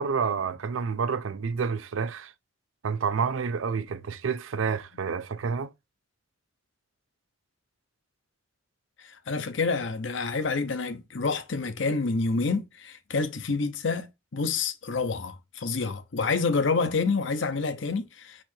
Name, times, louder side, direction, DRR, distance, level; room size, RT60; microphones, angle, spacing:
voice 1, 0.0-2.3 2.8-5.7, right 5 dB, 90° right, 0.5 m, -29 dB
voice 2, 9.0-18.4, left 4 dB, 70° left, 0.7 m, -28 dB
4.3 x 2.7 x 4.4 m
head